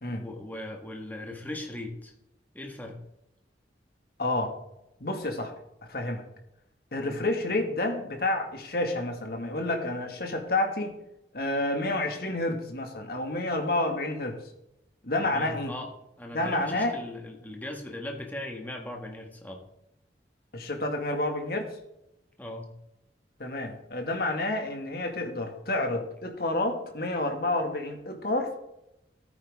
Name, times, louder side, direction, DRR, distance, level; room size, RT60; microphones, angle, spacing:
voice 1, 0.1-2.1 2.5-3.0 7.0-7.2 15.2-19.6 22.4-22.7, left 1 dB, 10° left, 1 dB, 1.6 m, -39 dB
voice 2, 4.2-4.5 5.0-5.5 5.9-6.2 6.9-11.0 11.3-14.4 15.0-15.7 16.3-16.9 20.5-21.7 23.4-28.5, left 2 dB, 55° left, 3 dB, 2.0 m, -29 dB
14.0 x 9.2 x 3.7 m, 0.85 s
head